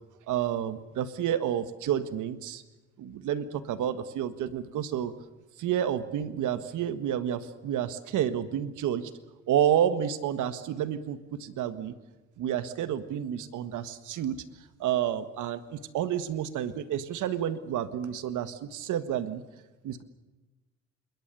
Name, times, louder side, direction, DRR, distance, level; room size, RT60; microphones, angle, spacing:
voice 1, 0.3-2.6 3.0-5.1 5.6-9.1 9.5-11.9 12.4-14.4 14.8-19.4 19.8-20.0, right 10 dB, 80° right, 12 dB, 1.7 m, -30 dB
26.5 x 22.0 x 6.9 m, 1.1 s
cardioid pair, 90°, 30 cm